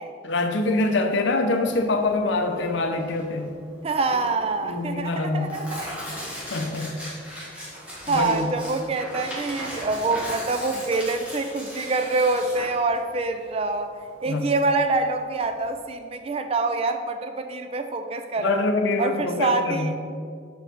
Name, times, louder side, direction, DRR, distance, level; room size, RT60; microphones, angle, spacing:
voice 1, 0.2-3.5 4.6-5.6 6.5-6.9 8.1-8.5 14.2-14.4 18.4-19.9, left 2 dB, 65° left, 5 dB, 0.6 m, -24 dB
Tearing, 1.6-15.8, equal, 5° right, 1.4 m, -38 dB
voice 2, 3.8-5.8 8.1-13.9 14.2-18.6 19.0-19.9, right 3 dB, 30° right, 7 dB, 0.3 m, -26 dB
6.8 x 4.6 x 4.0 m, 2.3 s
head